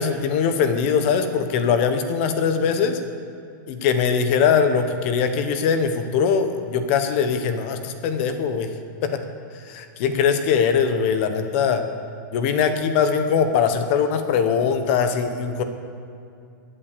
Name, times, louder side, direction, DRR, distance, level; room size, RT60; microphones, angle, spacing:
voice 1, 0.0-3.0 3.7-8.7 9.0-9.2 9.7-11.8 12.3-15.6, left 6 dB, 35° left, 8 dB, 1.0 m, -21 dB
16.0 x 8.8 x 6.8 m, 2.5 s
supercardioid pair, 170°, 11 cm